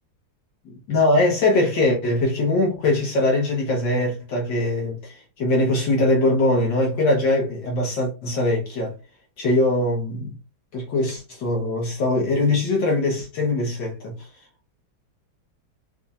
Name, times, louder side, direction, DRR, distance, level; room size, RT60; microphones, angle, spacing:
voice 1, 0.9-9.0 9.4-10.3 10.7-14.3, left 2 dB, 65° left, 1.7 m, -22 dB
5.6 x 3.4 x 2.4 m
omnidirectional pair, 2.2 m